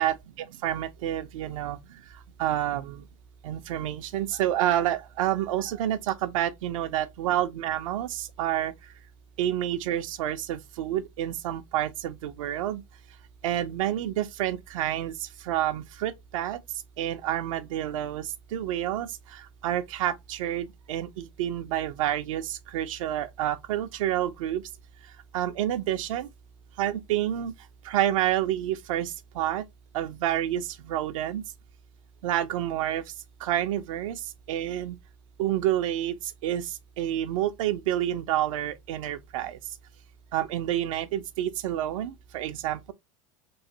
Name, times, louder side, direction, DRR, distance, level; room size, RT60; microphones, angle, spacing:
voice 1, 0.0-1.8 2.4-3.0 3.4-8.7 9.4-12.8 13.4-16.6 17.0-24.6 25.3-26.3 26.8-27.5 27.8-29.6 29.9-31.4 32.2-33.0 33.4-34.2 34.5-35.0 35.4-36.2 36.4-39.6 40.3-42.9, right 12 dB, 85° right, 0.5 m, -29 dB
3.1 x 2.8 x 2.6 m
supercardioid pair, 120°, 17 cm